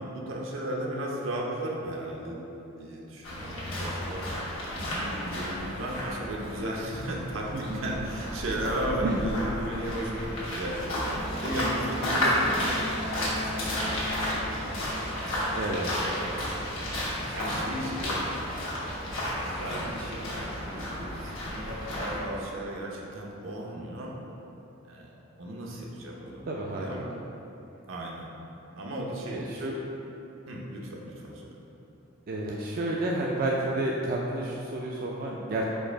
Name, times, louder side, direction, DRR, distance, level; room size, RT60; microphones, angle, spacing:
voice 1, 0.0-2.4 2.8-4.5 4.9-14.7 15.3-16.3 17.3-18.5 19.4-24.1 24.8-27.1 27.9-28.3 28.7-29.6 30.5-31.6, right 1 dB, 75° right, -2 dB, 0.7 m, -36 dB
sound 1, 3.2-22.2, left 1 dB, 90° left, 1.2 m, -32 dB
voice 2, 7.5-7.9 9.0-9.2 12.2-12.3 15.5-15.9 26.4-27.0 29.3-29.7 32.3-35.6, right 2 dB, 45° right, -3 dB, 0.3 m, -30 dB
Wind instrument woodwind instrument, 11.1-16.7, left 1 dB, 50° left, 0.8 m, -41 dB
4.5 x 2.6 x 4.4 m, 3.0 s
head